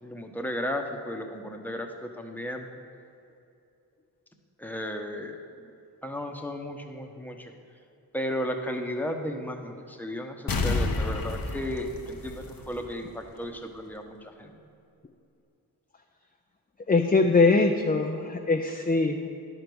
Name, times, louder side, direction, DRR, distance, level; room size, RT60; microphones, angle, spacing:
voice 1, 0.0-2.7 4.6-5.4 6.0-7.5 8.1-14.6, equal, 5° left, 3 dB, 1.1 m, -34 dB
sound 1, 10.5-13.1 13.4-13.5, left 3 dB, 60° left, 1.0 m, -30 dB
voice 2, 16.9-19.3, left 3 dB, 20° left, 4 dB, 0.6 m, -22 dB
11.0 x 5.2 x 6.2 m, 2.6 s
cardioid pair, 45°, 40 cm